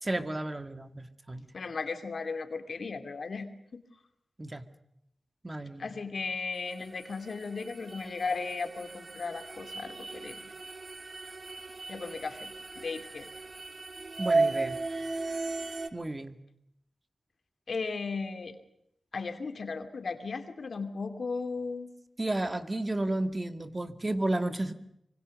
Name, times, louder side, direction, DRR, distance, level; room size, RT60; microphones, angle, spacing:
voice 1, 0.0-1.5 4.4-4.7 5.4-5.9 14.2-14.8 15.9-16.4 22.2-24.7, right 1 dB, 30° right, 9 dB, 2.1 m, -32 dB
voice 2, 1.5-3.8 5.8-10.5 11.9-12.5 12.8-13.3 17.7-18.6 19.1-21.9, left 4 dB, 70° left, 8 dB, 2.7 m, -36 dB
sound 1, 6.6-15.9, right 3 dB, 55° right, 2.0 m, -35 dB
25.0 x 25.0 x 6.6 m, 0.77 s
cardioid pair, 55°, 0 cm